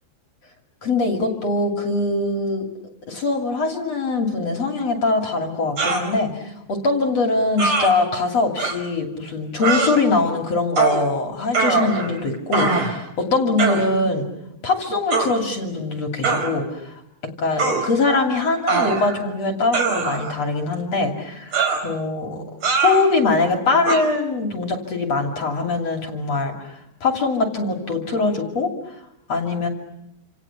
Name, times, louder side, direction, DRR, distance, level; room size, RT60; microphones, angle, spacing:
voice 1, 0.8-2.6 3.1-14.3 14.6-16.9 17.4-22.4 22.8-28.7 29.3-29.7, left 3 dB, 40° left, 2 dB, 3.1 m, -22 dB
sound 1, 5.8-6.1 7.6-7.9 8.6-8.7 9.6-9.9 10.8-11.0 11.5-12.2 12.5-13.0 13.6-13.8 15.1-15.3 16.2-16.5 17.6-17.8 18.7-19.2 19.7-20.4 21.5-21.9 22.6-23.0 23.8-24.0, right 4 dB, 35° right, 5.2 m, -21 dB
29.0 x 27.5 x 7.2 m, 0.82 s
omnidirectional pair, 5.5 m